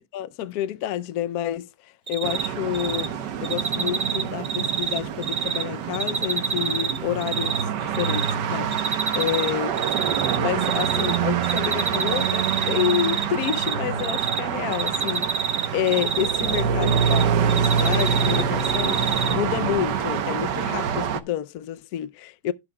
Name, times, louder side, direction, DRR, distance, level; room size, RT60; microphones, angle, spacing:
voice 1, 0.1-9.7 10.1-15.4 15.7-22.5, left 10 dB, 65° left, 1.1 m, -29 dB
Cricket, 2.1-2.5 2.7-3.1 3.4-5.6 5.9-7.6 7.9-8.3 8.7-9.5 9.8-11.2 11.4-13.7 14.0-14.4 14.7-17.2 17.5-19.3, right 6 dB, 50° right, 0.5 m, -26 dB
sound 1, 2.2-21.2, right 7 dB, 80° right, 1.5 m, -26 dB
17.0 x 6.7 x 2.2 m
omnidirectional pair, 1.8 m